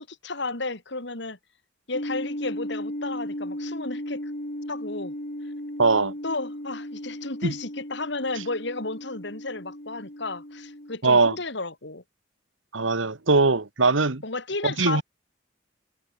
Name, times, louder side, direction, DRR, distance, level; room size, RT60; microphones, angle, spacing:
voice 1, 0.0-1.4 1.9-4.3 4.7-5.1 6.2-12.0 14.2-15.0, left 3 dB, 65° left, 3.2 m, -33 dB
sound 1, 1.9-11.0, equal, 45° left, 6.7 m, -36 dB
voice 2, 5.8-6.1 7.4-7.5 11.0-11.3 12.7-14.2 14.6-15.0, right 3 dB, 85° right, 1.6 m, -21 dB
head